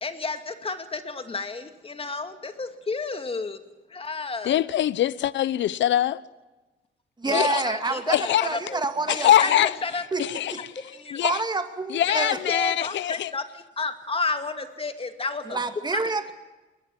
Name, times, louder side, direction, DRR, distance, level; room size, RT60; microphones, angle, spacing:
voice 1, 0.0-3.6 3.9-4.6 7.3-8.2 8.4-8.8 9.2-9.5 9.8-10.0 11.0-11.2 12.1-13.5 13.8-15.6, left 3 dB, 30° left, 2.3 m, -31 dB
voice 2, 4.4-6.2 7.3-7.6 8.1-8.6 9.1-11.4 11.9-13.3, left 12 dB, 70° left, 0.8 m, -23 dB
voice 3, 7.2-8.2 8.4-9.7 10.1-10.6 11.2-12.4 15.4-16.3, right 3 dB, 20° right, 2.3 m, -28 dB
21.0 x 20.0 x 7.6 m
cardioid pair, 90°, 20 cm